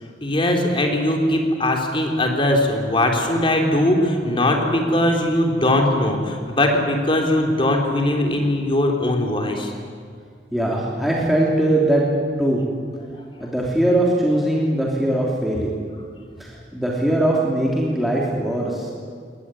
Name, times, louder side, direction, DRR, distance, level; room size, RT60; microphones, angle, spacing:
voice 1, 0.2-9.7, left 1 dB, 30° left, 2 dB, 3.3 m, -20 dB
voice 2, 10.5-12.0 12.4-12.6 13.4-15.8 16.4-18.9, right 1 dB, ahead, -4 dB, 3.1 m, -21 dB
22.0 x 20.0 x 9.9 m, 2.1 s
head